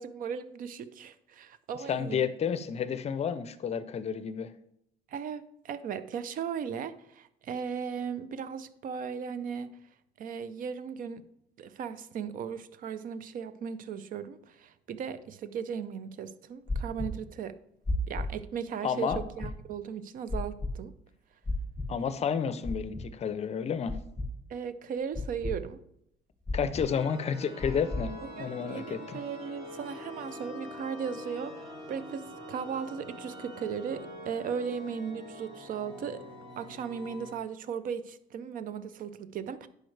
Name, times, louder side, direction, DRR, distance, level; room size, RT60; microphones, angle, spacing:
voice 1, 0.0-2.3 5.1-9.8 10.2-11.2 11.6-17.6 18.1-20.9 24.5-25.8 28.2-36.2 36.6-39.7, right 7 dB, 55° right, 0.5 m, -37 dB
voice 2, 1.9-4.5 18.8-19.2 21.9-24.0 26.5-29.2, left 7 dB, 40° left, 0.5 m, -31 dB
sound 1, 16.7-17.1 17.9-18.3 19.1-19.5 20.3-20.7 21.4-21.9 22.6-23.0 23.9-24.3 25.1-25.5 26.5-26.9 27.6-28.0, left 3 dB, 5° left, 1.9 m, -32 dB
sound 2, 26.9-37.3, left 1 dB, 30° right, 1.8 m, -45 dB
10.5 x 4.9 x 3.3 m
cardioid pair, 110°, 17 cm